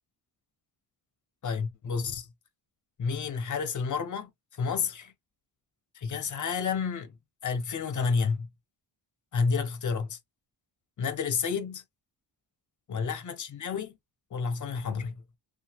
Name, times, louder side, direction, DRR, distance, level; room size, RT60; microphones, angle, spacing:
voice 1, 1.4-2.3 3.0-5.1 5.9-7.2 7.4-8.5 9.3-10.2 11.0-11.8 12.9-13.9 14.3-15.2, left 5 dB, 40° left, 0.6 m, -30 dB
2.8 x 2.4 x 2.7 m
cardioid pair, 90°, 48 cm